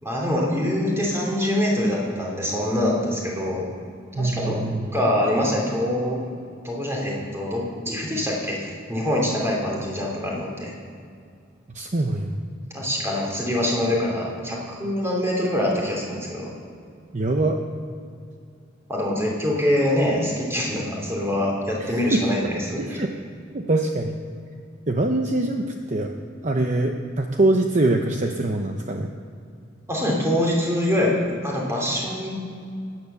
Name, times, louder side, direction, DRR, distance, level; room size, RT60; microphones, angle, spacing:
voice 1, 0.0-3.6 4.2-4.6 4.9-6.3 6.6-8.6 8.9-10.7 12.7-16.5 18.9-23.0 29.9-31.1 31.4-32.3, left 1 dB, 15° right, -2 dB, 3.0 m, -24 dB
voice 2, 4.1-5.0 11.7-12.3 17.1-17.6 21.8-22.2 22.8-23.1 23.5-24.2 24.9-26.1 26.4-29.1, right 2 dB, 40° right, 4 dB, 0.8 m, -23 dB
16.5 x 9.6 x 6.9 m, 2.4 s
head